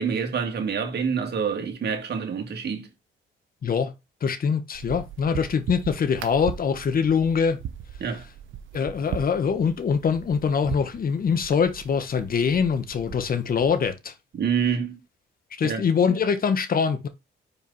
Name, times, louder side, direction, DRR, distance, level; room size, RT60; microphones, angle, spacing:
voice 1, 0.0-2.9 8.0-8.3 14.3-15.0 15.6-15.9, right 6 dB, 55° right, 2.2 m, -27 dB
voice 2, 3.6-3.9 4.2-7.6 8.7-14.1 15.6-17.1, left 6 dB, 45° left, 1.3 m, -23 dB
sound 1, 4.7-13.9, right 9 dB, 75° right, 1.0 m, -39 dB
5.1 x 4.8 x 5.5 m
cardioid pair, 90°, 20 cm